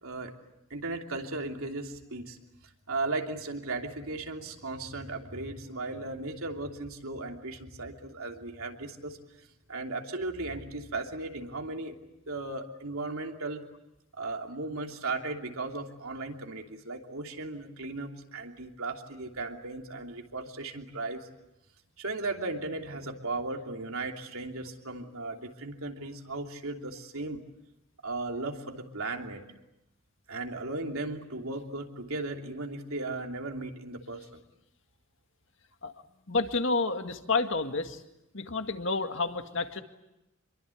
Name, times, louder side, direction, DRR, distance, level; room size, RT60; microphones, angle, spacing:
voice 1, 0.0-0.3 0.7-2.4 2.9-9.2 9.7-11.9 12.3-13.6 14.2-21.3 22.0-27.4 28.0-29.4 30.3-34.4, right 2 dB, 75° right, 3 dB, 3.0 m, -36 dB
voice 2, 36.3-38.0 38.3-39.8, left 3 dB, 60° left, 7 dB, 1.9 m, -29 dB
28.0 x 23.0 x 8.5 m, 0.91 s
head